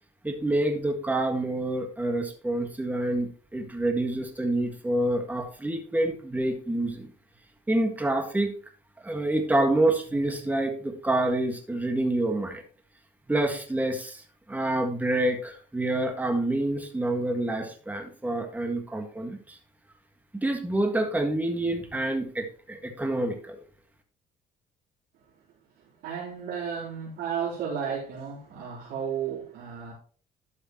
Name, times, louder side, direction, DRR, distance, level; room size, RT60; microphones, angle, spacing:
voice 1, 0.2-7.1 7.7-8.6 9.0-12.6 13.3-14.2 14.5-19.6 20.4-23.6, right 1 dB, 10° right, 5 dB, 1.7 m, -27 dB
voice 2, 25.8-29.9, right 7 dB, 80° right, -8 dB, 3.5 m, -33 dB
12.0 x 6.6 x 3.0 m, 0.41 s
cardioid pair, 110°, 17 cm